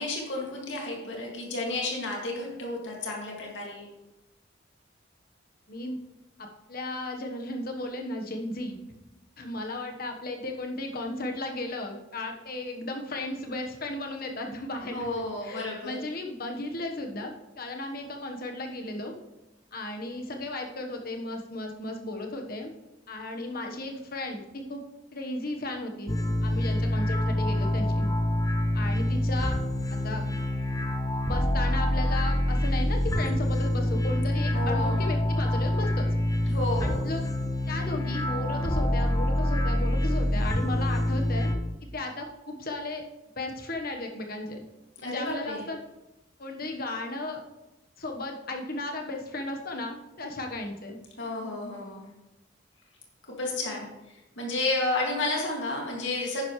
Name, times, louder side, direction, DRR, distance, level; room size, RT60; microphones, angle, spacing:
voice 1, 0.0-3.9 14.9-16.0 34.5-35.1 36.5-37.0 45.0-45.6 51.2-52.1 53.4-56.4, left 2 dB, 80° left, -1 dB, 2.4 m, -32 dB
voice 2, 5.7-6.0 6.4-8.8 9.4-15.1 15.4-19.2 19.7-22.7 23.1-24.8 25.1-26.1 26.4-28.1 28.7-29.6 29.9-30.3 31.2-36.1 36.8-37.3 37.7-41.6 41.9-43.0 43.4-44.6 45.0-45.8 46.4-47.4 48.0-51.0, left 2 dB, 55° left, 3 dB, 1.3 m, -35 dB
sound 1, 26.1-41.6, left 1 dB, 20° left, 0.7 m, -26 dB
10.5 x 10.0 x 3.2 m, 0.98 s
head